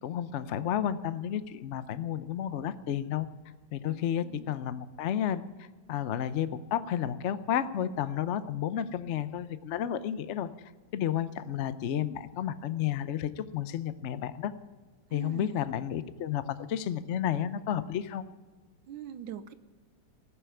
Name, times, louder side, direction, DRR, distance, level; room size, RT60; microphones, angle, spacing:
voice 1, 0.0-3.3 3.7-10.5 10.9-14.5 15.1-18.2, left 10 dB, 80° left, 13 dB, 0.6 m, -32 dB
voice 2, 3.9-4.5 15.1-15.7 18.9-19.5, right 8 dB, 90° right, 12 dB, 1.6 m, -42 dB
19.5 x 6.8 x 9.3 m, 1.3 s
omnidirectional pair, 2.1 m